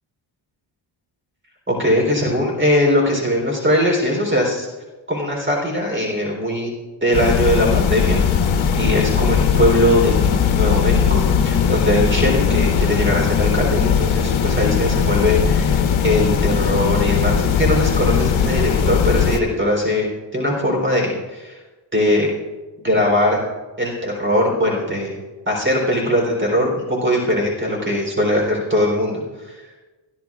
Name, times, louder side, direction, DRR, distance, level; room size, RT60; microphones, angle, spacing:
voice 1, 1.7-4.7 5.1-6.7 7.0-20.1 20.3-21.6 21.9-22.3 22.8-23.4 23.8-25.2 25.5-29.7, left 1 dB, 25° right, 0 dB, 3.6 m, -20 dB
sound 1, 7.1-19.4, left 7 dB, 75° left, 1.1 m, -18 dB
24.0 x 11.5 x 2.5 m, 1.2 s
wide cardioid pair, 140°, 48 cm